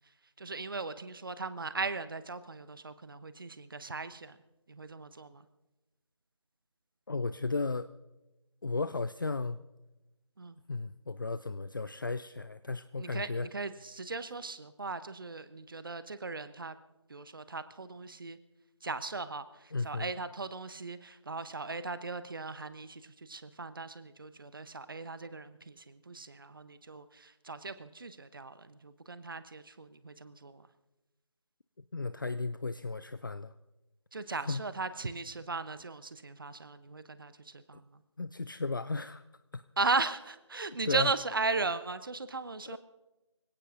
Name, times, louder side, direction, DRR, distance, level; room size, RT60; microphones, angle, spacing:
voice 1, 0.4-4.4 4.7-5.4 10.4-10.6 13.0-16.8 17.1-18.4 18.8-30.7 34.1-38.0 39.8-42.8, right 3 dB, 45° right, 14 dB, 0.8 m, -37 dB
voice 2, 7.1-7.9 8.6-9.6 10.7-13.5 19.7-20.1 31.9-33.5 34.3-34.6 38.2-39.2 39.5-39.6 40.8-41.1 42.7-42.8, left 3 dB, 45° left, 13 dB, 0.4 m, -35 dB
25.5 x 17.0 x 2.6 m, 1.0 s
figure-of-eight pair, 160°, 16 cm